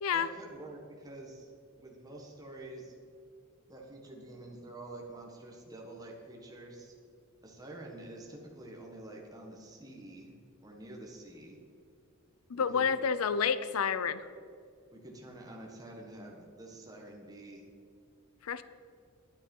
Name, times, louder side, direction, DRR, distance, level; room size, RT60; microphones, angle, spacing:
voice 1, 0.1-1.5 1.7-3.0 3.7-6.9 7.4-10.3 10.6-11.6 12.5-12.9 14.9-17.6, right 2 dB, 15° right, -1 dB, 1.5 m, -48 dB
voice 2, 12.5-14.3 18.4-18.6, left 6 dB, 85° left, 14 dB, 0.5 m, -29 dB
10.0 x 9.6 x 5.4 m, 2.3 s
head